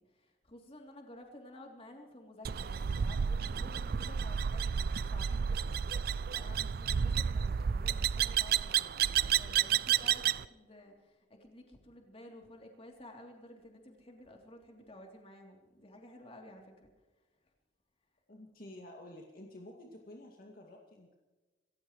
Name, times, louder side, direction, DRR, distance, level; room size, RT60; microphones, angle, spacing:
voice 1, 0.0-16.9, left 1 dB, 35° left, 1 dB, 3.1 m, -53 dB
sound 1, 2.4-10.5, right 8 dB, 60° right, 0.4 m, -31 dB
voice 2, 18.3-21.2, left 1 dB, 55° left, 0 dB, 2.3 m, -51 dB
27.0 x 15.0 x 3.2 m, 1.2 s
head